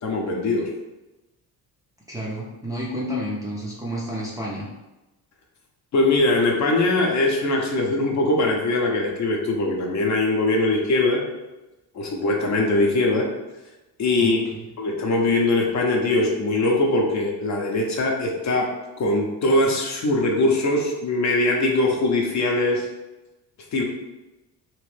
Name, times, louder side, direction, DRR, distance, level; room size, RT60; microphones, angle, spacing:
voice 1, 0.0-0.7 5.9-11.2 11.9-13.3 14.0-14.4 14.8-18.7 19.0-22.9 23.7-23.8, left 2 dB, 40° left, 0 dB, 0.6 m, -21 dB
voice 2, 2.1-4.7 14.2-14.7, equal, 10° right, -6 dB, 0.5 m, -30 dB
2.9 x 2.6 x 3.3 m, 1.0 s
cardioid pair, 135°, 42 cm